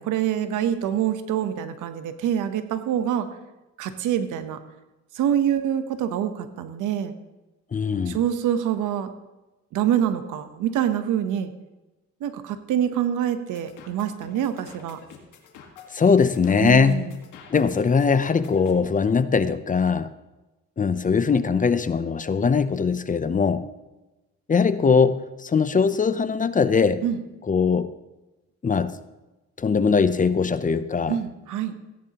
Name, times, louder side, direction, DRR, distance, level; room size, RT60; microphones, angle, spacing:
voice 1, 0.0-3.3 3.8-4.6 5.1-7.1 8.1-9.1 9.7-11.5 12.2-15.0 16.6-17.1 27.0-27.2 31.1-31.7, right 9 dB, 90° right, 10 dB, 1.0 m, -25 dB
voice 2, 7.7-8.2 15.9-17.1 17.5-20.1 20.8-23.7 24.5-27.0 27.5-27.9 28.6-28.9 29.6-31.2, left 5 dB, 25° left, 13 dB, 0.6 m, -21 dB
sound 1, 13.5-18.8, left 7 dB, 85° left, 1.7 m, -47 dB
16.0 x 10.5 x 2.9 m, 1.1 s
cardioid pair, 90°, 30 cm